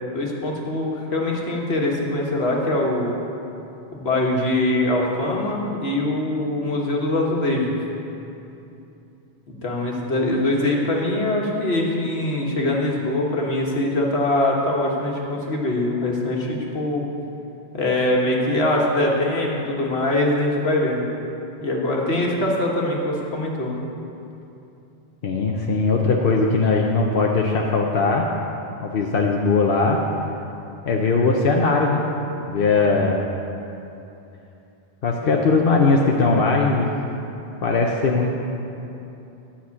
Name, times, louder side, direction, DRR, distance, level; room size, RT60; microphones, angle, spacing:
voice 1, 0.1-3.1 3.9-7.8 9.6-17.1 17.7-21.0 21.6-23.8, left 1 dB, 80° left, -2 dB, 1.8 m, -23 dB
voice 2, 25.2-28.3 28.8-30.0 30.9-32.0 32.5-33.3 35.0-36.9 37.6-38.4, left 3 dB, 65° left, -1 dB, 1.0 m, -19 dB
12.0 x 5.8 x 8.5 m, 2.9 s
omnidirectional pair, 1.0 m